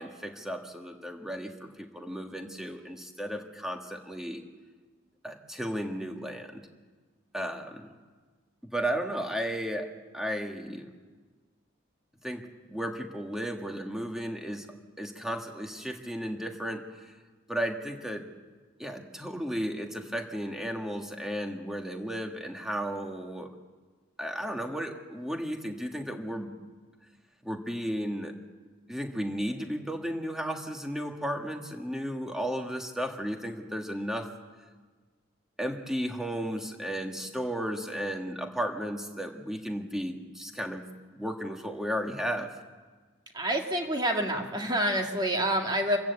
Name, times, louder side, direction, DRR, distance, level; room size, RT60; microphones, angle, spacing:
voice 1, 0.0-4.4 5.2-6.6 7.3-7.9 8.7-10.9 12.2-14.7 15.0-17.1 17.5-18.3 18.8-23.5 24.2-26.5 27.4-28.3 28.9-34.4 35.6-40.8 41.1-42.6, equal, ahead, 3 dB, 1.7 m, -34 dB
voice 2, 43.3-46.0, right 1 dB, 20° right, 2 dB, 2.1 m, -27 dB
27.0 x 15.0 x 8.3 m, 1.4 s
head